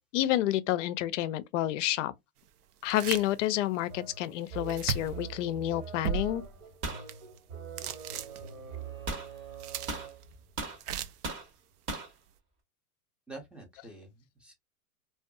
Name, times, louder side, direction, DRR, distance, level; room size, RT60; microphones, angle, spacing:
voice 1, 0.1-2.1 2.8-6.4, left 14 dB, 55° left, 0.5 m, -29 dB
sound 1, 2.8-3.3 3.7-3.8 4.7-5.2 6.0-6.6 7.1-7.4 7.8-8.8 9.4-10.2 10.8-11.3, right 8 dB, 80° right, 0.5 m, -36 dB
sound 2, 3.9-10.4, right 7 dB, 60° right, 1.4 m, -44 dB
sound 3, 6.8-7.1 9.1-9.3 9.9-10.8 11.2-11.5 11.9-12.1, right 3 dB, 25° right, 0.8 m, -36 dB
voice 2, 13.3-14.5, right 2 dB, ahead, 0.5 m, -47 dB
2.5 x 2.3 x 2.3 m
hypercardioid pair, 115°, 46 cm